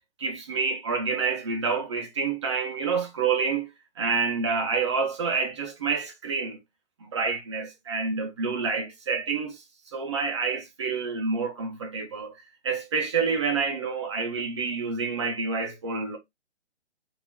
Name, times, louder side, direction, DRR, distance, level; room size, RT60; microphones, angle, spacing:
voice 1, 0.2-3.7 4.0-6.6 7.0-9.6 9.9-12.3 12.6-16.2, right 5 dB, 25° right, 0.5 m, -28 dB
3.4 x 2.6 x 2.2 m
figure-of-eight pair, 135°, 35 cm